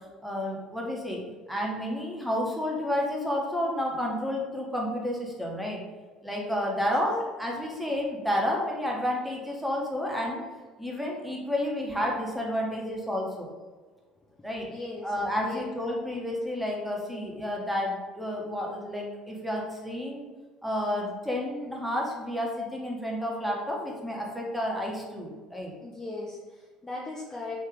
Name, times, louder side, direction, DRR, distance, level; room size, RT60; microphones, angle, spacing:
voice 1, 0.2-1.2 1.5-5.8 6.2-10.4 10.8-13.5 14.4-14.7 15.0-20.3 20.6-25.7, left 1 dB, ahead, -2 dB, 1.0 m, -30 dB
voice 2, 14.7-15.1 15.4-15.6 25.8-27.6, left 3 dB, 20° left, -3 dB, 0.5 m, -38 dB
3.2 x 2.7 x 3.4 m, 1.3 s
figure-of-eight pair, 60°, 3 cm